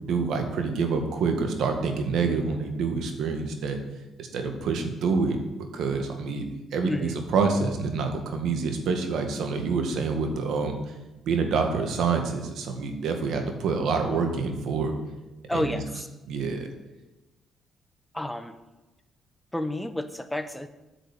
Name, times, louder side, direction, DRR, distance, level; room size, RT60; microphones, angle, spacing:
voice 1, 0.0-3.8 4.2-5.4 5.7-6.5 6.7-10.7 11.3-14.9 15.5-15.8 16.3-16.7, right 4 dB, 75° right, 5 dB, 1.7 m, -27 dB
voice 2, 6.8-7.2 15.5-16.1 18.1-18.6 19.5-20.7, left 1 dB, 5° left, 10 dB, 0.8 m, -30 dB
9.1 x 6.3 x 8.4 m, 1.1 s
cardioid pair, 90°, 0 cm